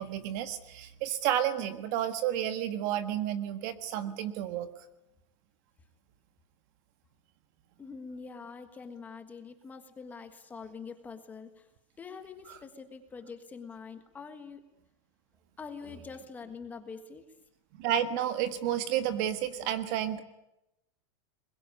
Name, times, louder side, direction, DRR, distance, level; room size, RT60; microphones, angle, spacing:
voice 1, 0.0-4.7 17.8-20.2, right 11 dB, 35° right, 10 dB, 1.6 m, -31 dB
voice 2, 7.8-11.7 12.0-14.6 15.6-17.4, left 5 dB, 10° left, 7 dB, 1.5 m, -45 dB
23.0 x 21.5 x 9.8 m, 0.90 s
supercardioid pair, 175°, 16 cm